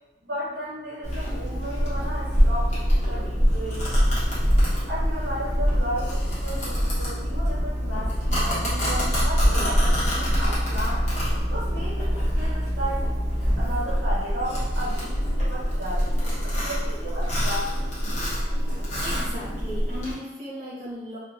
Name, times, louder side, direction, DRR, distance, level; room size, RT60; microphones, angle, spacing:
voice 1, 0.2-3.9 4.9-11.1 11.5-13.1 13.6-17.7, equal, 70° right, -8 dB, 0.6 m, -34 dB
Domestic sounds home sounds, 1.0-20.1, equal, 45° left, 0.9 m, -24 dB
voice 2, 18.6-21.2, equal, 45° right, -6 dB, 0.9 m, -37 dB
2.8 x 2.2 x 2.4 m, 1.0 s
head